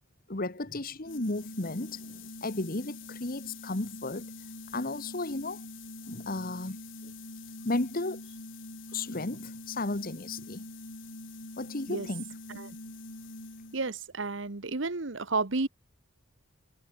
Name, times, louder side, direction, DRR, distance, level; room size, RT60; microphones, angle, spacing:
voice 1, 0.3-4.3 4.7-5.6 6.1-6.8 7.0-7.1 7.6-8.2 8.9-10.6 11.6-12.3, left 2 dB, 45° left, 1.6 m, -34 dB
sound 1, 1.0-14.0, left 2 dB, 70° left, 5.1 m, -45 dB
voice 2, 13.7-15.7, right 3 dB, 65° right, 1.3 m, -32 dB
head